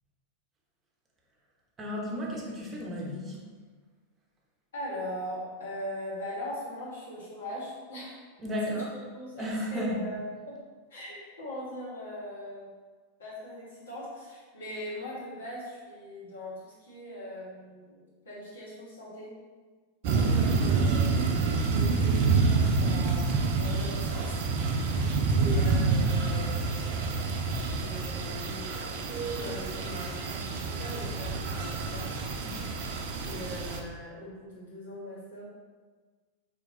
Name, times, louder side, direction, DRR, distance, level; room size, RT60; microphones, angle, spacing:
voice 1, 1.8-3.4 8.4-8.9 9.4-10.0 20.1-20.5 32.4-32.6, equal, 25° right, -2 dB, 0.9 m, -34 dB
voice 2, 4.7-8.2 8.7-8.8 9.1-10.6 10.9-12.7 13.2-19.3 20.0-21.2 21.6-24.4 25.3-27.0 27.6-32.1 33.2-35.4, equal, 65° left, -6 dB, 1.5 m, -40 dB
sound 1, 20.0-33.8, right 4 dB, 50° right, 0.5 m, -27 dB
4.5 x 3.5 x 2.7 m, 1.4 s
figure-of-eight pair, 90°, 0 cm